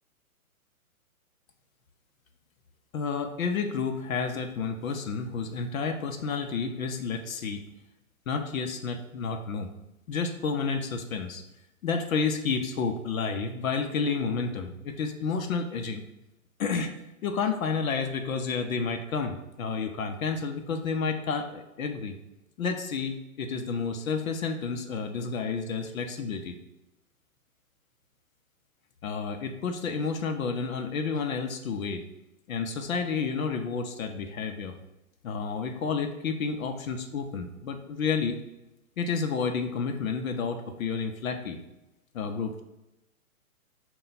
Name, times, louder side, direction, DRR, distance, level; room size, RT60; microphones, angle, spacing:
voice 1, 2.9-7.6 8.3-9.7 10.1-11.4 11.8-16.0 16.6-16.9 17.2-22.2 22.6-26.6 29.0-32.0 32.5-34.8 35.2-38.4 39.0-41.6 42.1-42.6, left 5 dB, 70° left, 5 dB, 0.6 m, -30 dB
5.3 x 2.3 x 3.9 m, 0.92 s
hypercardioid pair, 155°, 44 cm